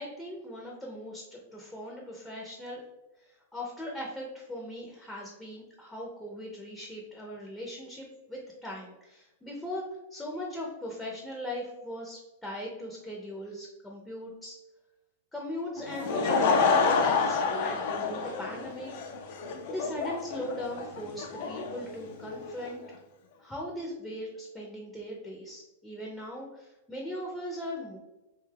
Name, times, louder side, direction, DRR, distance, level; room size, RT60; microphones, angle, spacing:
voice 1, 0.0-2.8 3.3-9.8 10.1-14.6 15.3-18.9 19.7-22.8 23.4-28.0, left 1 dB, 5° left, -3 dB, 0.5 m, -39 dB
Laughter / Crowd, 15.8-22.7, left 4 dB, 55° left, 0.4 m, -28 dB
2.6 x 2.3 x 3.3 m, 1.0 s
hypercardioid pair, 120°, 0 cm